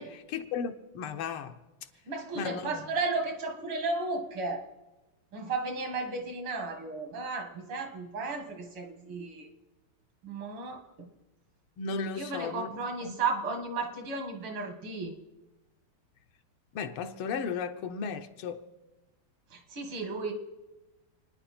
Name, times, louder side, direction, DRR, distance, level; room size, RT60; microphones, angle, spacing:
voice 1, 0.0-1.6 2.3-2.9 11.8-13.2 16.7-18.6, left 6 dB, 80° left, 1.8 m, -35 dB
voice 2, 2.1-4.7 5.3-9.5 10.2-11.1 12.2-15.1 19.5-20.3, right 3 dB, 75° right, 2.7 m, -34 dB
28.5 x 10.0 x 4.3 m
omnidirectional pair, 2.4 m